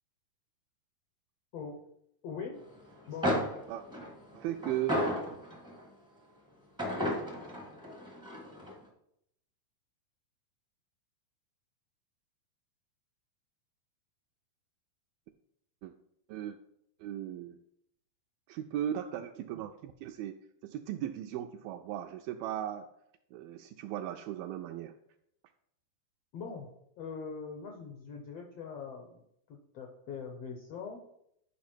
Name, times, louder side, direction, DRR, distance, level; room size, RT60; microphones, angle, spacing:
voice 1, 2.2-2.6 3.1-3.5 26.3-26.7 27.0-29.2 29.5-31.0, left 5 dB, 85° left, 2 dB, 1.4 m, -42 dB
sound 1, 2.9-3.0 3.2-5.8 6.8-8.7, equal, 5° right, 0.4 m, -33 dB
voice 2, 4.3-5.0 5.3-5.4 15.8-15.9 16.3-16.6 17.0-17.6 18.5-20.4 20.6-22.9 23.3-24.9, right 11 dB, 85° right, 4 dB, 2.3 m, -37 dB
11.0 x 5.1 x 4.4 m, 0.75 s
omnidirectional pair, 4.2 m